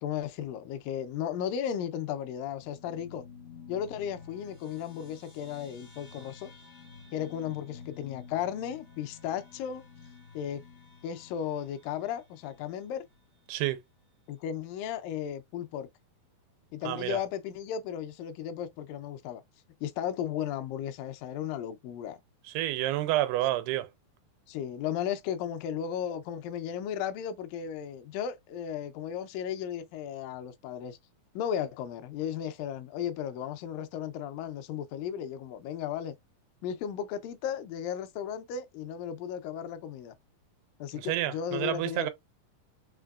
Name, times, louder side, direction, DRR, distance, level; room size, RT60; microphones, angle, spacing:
voice 1, 0.0-3.2 3.7-6.5 7.1-9.8 10.3-10.6 11.0-13.0 14.3-15.9 16.7-19.4 19.8-22.2 24.5-31.0 31.3-36.2 36.6-40.1 40.8-42.1, left 9 dB, 80° left, 2.1 m, -35 dB
sound 1, 2.6-13.4, left 6 dB, 45° left, 0.7 m, -51 dB
voice 2, 13.5-13.8 16.9-17.2 22.5-23.9 41.0-42.1, right 15 dB, 90° right, 2.6 m, -29 dB
5.8 x 3.2 x 2.4 m
omnidirectional pair, 4.5 m